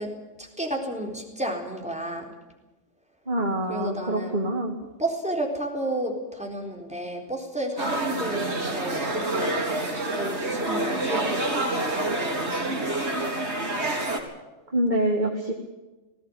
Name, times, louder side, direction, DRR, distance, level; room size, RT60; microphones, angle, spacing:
voice 1, 0.0-2.3 3.7-4.4 5.0-13.1, right 1 dB, 5° right, 2 dB, 4.2 m, -32 dB
voice 2, 3.3-4.7 14.7-15.5, right 1 dB, 35° right, 1 dB, 2.4 m, -25 dB
sound 1, 7.8-14.2, right 2 dB, 65° right, 3.8 m, -27 dB
20.0 x 17.0 x 8.7 m, 1.1 s
omnidirectional pair, 1.3 m